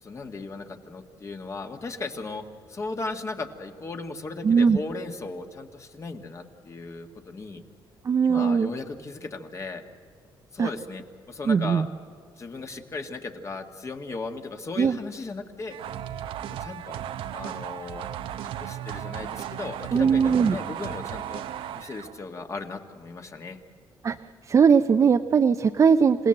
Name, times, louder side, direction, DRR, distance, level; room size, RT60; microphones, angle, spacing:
voice 1, 0.0-7.6 8.2-9.8 10.5-11.9 12.4-15.8 16.6-17.0 17.3-18.1 18.4-21.4 21.7-23.6, left 3 dB, 35° left, 5 dB, 1.7 m, -36 dB
voice 2, 4.4-4.8 8.0-8.7 10.6-10.7 11.5-11.9 14.8-15.0 19.9-20.6 24.0-24.2 24.5-26.3, right 6 dB, 35° right, 8 dB, 0.6 m, -20 dB
sound 1, 15.7-22.2, right 11 dB, 85° right, 0.8 m, -35 dB
27.0 x 17.5 x 7.8 m, 2.2 s
cardioid pair, 115°, 9 cm